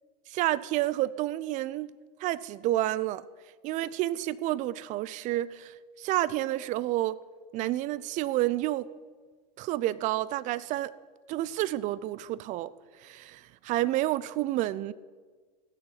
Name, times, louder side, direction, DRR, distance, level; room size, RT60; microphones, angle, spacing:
voice 1, 0.3-1.9 2.2-3.2 3.6-7.2 7.5-8.9 9.6-10.9 11.3-12.7 13.0-14.9, right 15 dB, 35° right, 0.5 m, -29 dB
14.5 x 6.6 x 7.3 m
hypercardioid pair, 105°, 21 cm